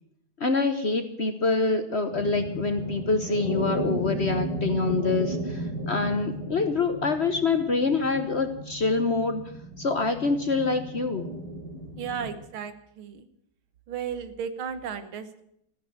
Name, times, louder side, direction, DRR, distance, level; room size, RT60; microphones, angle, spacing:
voice 1, 0.4-9.4 9.8-11.3, left 3 dB, 45° left, 8 dB, 1.0 m, -26 dB
sound 1, 2.1-12.3, right 1 dB, 45° right, 8.6 m, -34 dB
voice 2, 12.0-13.3 13.9-15.4, right 7 dB, 85° right, 11 dB, 2.1 m, -34 dB
15.0 x 10.0 x 8.8 m, 0.74 s
omnidirectional pair, 2.2 m